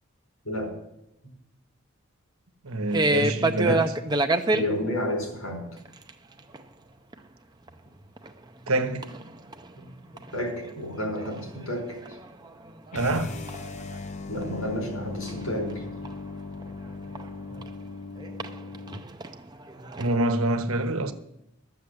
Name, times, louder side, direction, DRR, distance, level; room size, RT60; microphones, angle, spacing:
voice 1, 2.6-4.0 8.7-9.1 12.9-13.3 20.0-21.1, right 2 dB, 75° right, 1.2 m, -26 dB
sound 1, 2.9-4.6 5.8-6.1 6.4-6.6 7.1-7.2 7.7-7.8 8.0-8.8 9.0-10.4 10.6-14.0 14.4-17.7 18.2-20.2, right 2 dB, 20° right, 0.6 m, -29 dB
voice 2, 4.5-5.6 9.8-9.9 10.3-12.0 14.3-15.8 19.8-19.9, left 1 dB, 80° left, 4.8 m, -31 dB
sound 2, 12.9-19.1, left 3 dB, 35° left, 0.6 m, -38 dB
13.0 x 7.1 x 8.0 m
head